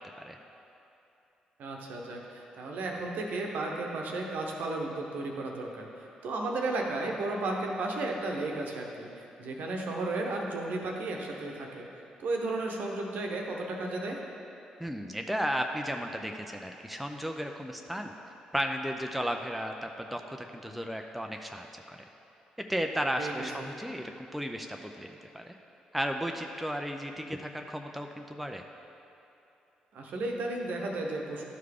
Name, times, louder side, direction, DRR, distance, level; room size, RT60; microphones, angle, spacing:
voice 1, 1.6-11.9 12.2-14.2 23.2-23.7 29.9-31.4, right 2 dB, 55° right, 0 dB, 0.9 m, -34 dB
voice 2, 14.8-18.1 18.5-22.1 22.7-25.5 25.9-28.6, equal, ahead, 3 dB, 0.5 m, -34 dB
12.0 x 4.7 x 3.5 m, 2.9 s
figure-of-eight pair, 40°, 4 cm